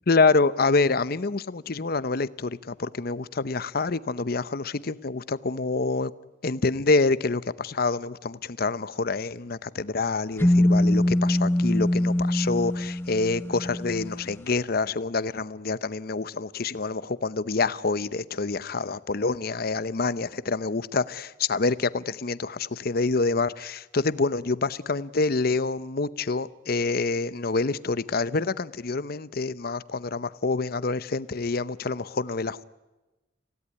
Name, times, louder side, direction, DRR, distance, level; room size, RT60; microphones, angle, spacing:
voice 1, 0.1-6.1 6.4-32.6, left 3 dB, 55° left, 0.8 m, -27 dB
sound 1, 10.4-14.2, left 1 dB, 10° left, 0.8 m, -23 dB
28.0 x 17.0 x 9.8 m
head